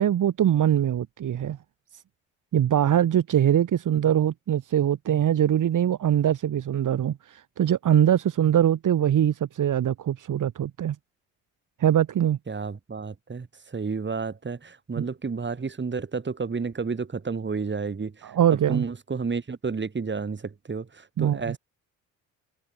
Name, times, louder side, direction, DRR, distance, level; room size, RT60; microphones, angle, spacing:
voice 1, 0.0-1.6 2.5-11.0 11.8-12.4 15.0-15.1 18.2-18.8 21.2-21.5, right 10 dB, 60° right, 4.1 m, -22 dB
voice 2, 12.5-21.6, right 5 dB, 30° right, 7.2 m, -31 dB
supercardioid pair, 75°, 36 cm